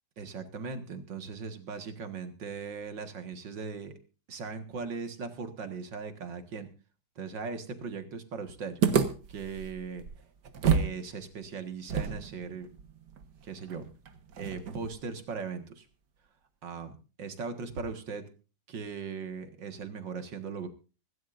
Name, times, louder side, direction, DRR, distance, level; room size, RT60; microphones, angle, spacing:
voice 1, 0.2-3.9 4.3-6.7 7.2-8.8 9.3-10.0 10.7-12.7 13.4-13.9 14.4-15.9 16.6-16.9 17.2-18.2 18.7-20.7, right 5 dB, 85° right, 7 dB, 2.4 m, -38 dB
sound 1, 8.8-11.0 11.2-11.3 11.9-15.0, right 6 dB, 70° right, 1.9 m, -30 dB
25.5 x 12.5 x 2.6 m, 0.34 s
omnidirectional pair, 1.9 m